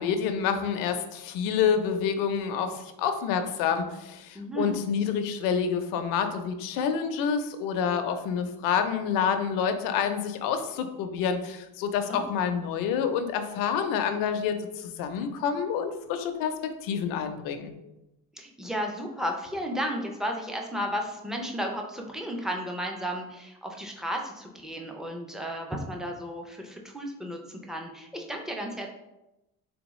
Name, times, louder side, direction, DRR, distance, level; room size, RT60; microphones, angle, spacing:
voice 1, 0.0-17.7, left 7 dB, 70° left, 8 dB, 0.6 m, -28 dB
voice 2, 4.3-4.8 12.0-12.2 18.4-28.9, equal, ahead, 2 dB, 0.3 m, -33 dB
3.5 x 3.4 x 3.0 m, 0.95 s
cardioid pair, 135°, 35 cm